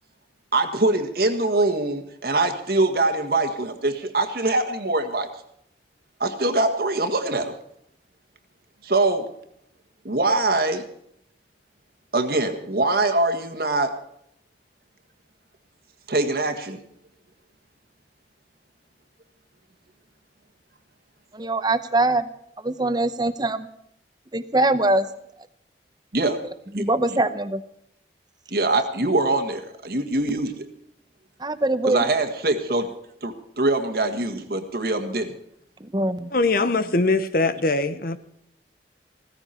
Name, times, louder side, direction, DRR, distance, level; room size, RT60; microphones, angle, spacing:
voice 1, 0.5-5.3 6.2-7.5 8.8-9.3 10.1-10.8 12.1-13.9 16.1-16.8 26.1-26.4 26.7-26.8 28.5-30.7 31.9-32.9 33.2-35.3, right 2 dB, 55° right, 1.7 m, -23 dB
voice 2, 21.3-22.3 22.6-23.7 24.3-25.1 26.8-27.6 31.4-32.0 35.8-36.3, right 2 dB, 25° right, 0.9 m, -22 dB
voice 3, 36.3-38.2, left 3 dB, 55° left, 1.0 m, -22 dB
16.0 x 15.0 x 4.4 m
head